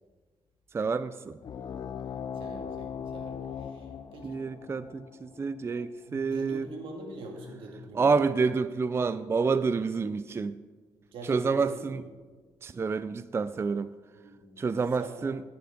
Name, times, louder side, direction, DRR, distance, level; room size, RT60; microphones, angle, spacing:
voice 1, 0.7-1.4 4.2-6.7 7.9-10.6 11.3-12.0 12.6-13.9 14.6-15.4, right 4 dB, 30° right, 14 dB, 0.4 m, -28 dB
sound 1, 1.4-6.5, left 7 dB, 55° left, 0.6 m, -40 dB
voice 2, 2.0-4.8 6.1-8.1 11.1-11.9 14.1-14.6 15.0-15.3, right 2 dB, 85° right, 2 dB, 2.4 m, -44 dB
14.5 x 10.5 x 3.9 m, 1.4 s
cardioid pair, 80°, 9 cm